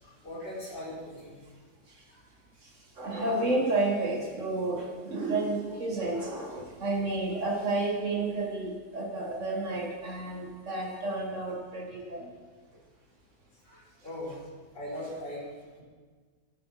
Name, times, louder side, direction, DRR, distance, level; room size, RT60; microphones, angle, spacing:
voice 1, 0.0-1.4 13.6-14.3 14.7-15.4 15.8-15.9, left 1 dB, 75° left, -7 dB, 4.8 m, -39 dB
voice 2, 2.6-12.3, right 2 dB, 45° right, -1 dB, 2.1 m, -31 dB
16.0 x 7.6 x 5.9 m, 1.5 s
omnidirectional pair, 1.9 m